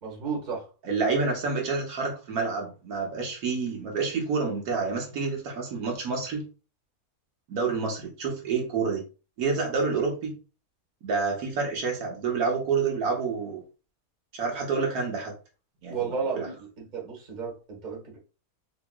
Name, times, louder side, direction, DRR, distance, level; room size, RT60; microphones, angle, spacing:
voice 1, 0.0-0.7 15.9-18.2, right 5 dB, 30° right, -2 dB, 1.2 m, -33 dB
voice 2, 0.8-6.4 7.5-9.0 9.4-10.3 11.0-13.6 14.3-15.3 15.8-16.0 16.3-16.5, right 4 dB, 75° right, 0 dB, 1.4 m, -28 dB
3.6 x 2.9 x 2.2 m, 0.33 s
omnidirectional pair, 1.6 m